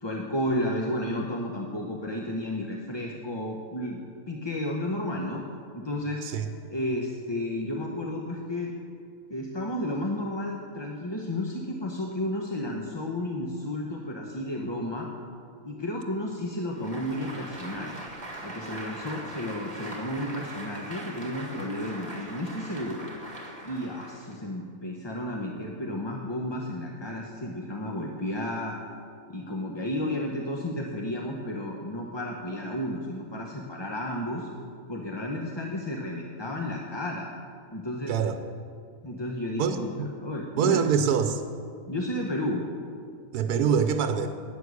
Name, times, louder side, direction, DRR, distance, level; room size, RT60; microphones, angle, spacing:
voice 1, 0.0-4.0 4.3-5.4 5.7-6.2 6.7-8.7 9.3-15.1 15.6-17.9 18.4-23.0 23.6-28.8 29.3-34.5 34.9-37.3 37.7-38.1 39.0-40.8 41.9-42.7, left 1 dB, 20° left, 0 dB, 0.8 m, -32 dB
Applause, 16.7-24.4, right 1 dB, 25° right, 1.9 m, -41 dB
voice 2, 39.6-40.1 40.6-41.4 43.3-44.3, right 7 dB, 85° right, 8 dB, 1.2 m, -25 dB
11.0 x 9.5 x 8.3 m, 2.3 s
omnidirectional pair, 1.6 m